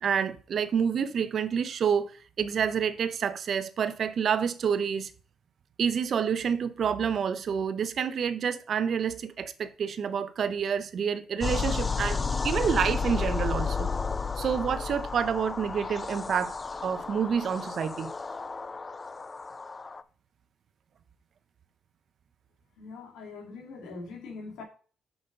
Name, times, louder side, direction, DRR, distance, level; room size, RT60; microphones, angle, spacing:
voice 1, 0.0-2.1 2.4-5.1 5.8-13.9 14.4-16.6 16.8-18.1, right 7 dB, 55° right, 0.6 m, -28 dB
sound 1, 11.4-20.0, left 5 dB, 25° left, 0.4 m, -32 dB
voice 2, 22.8-24.6, left 3 dB, 85° left, 2.4 m, -42 dB
6.0 x 5.1 x 5.2 m
cardioid pair, 90°, 0 cm